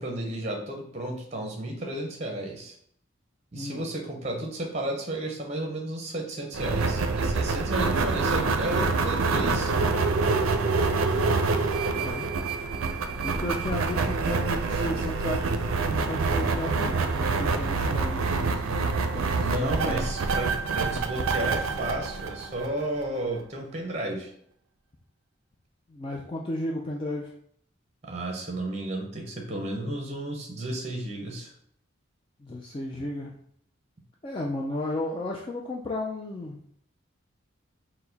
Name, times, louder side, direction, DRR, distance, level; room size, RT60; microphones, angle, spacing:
voice 1, 0.0-2.8 3.5-9.7 19.4-24.3 28.0-31.5, right 1 dB, 30° right, 1 dB, 0.7 m, -33 dB
voice 2, 3.5-3.9 11.9-12.3 13.2-18.6 19.1-20.3 25.9-27.4 32.4-33.3 34.2-36.6, left 1 dB, 25° left, -2 dB, 0.3 m, -34 dB
sound 1, 6.5-23.0, right 4 dB, 85° right, 0.4 m, -26 dB
4.5 x 2.1 x 3.9 m, 0.65 s
head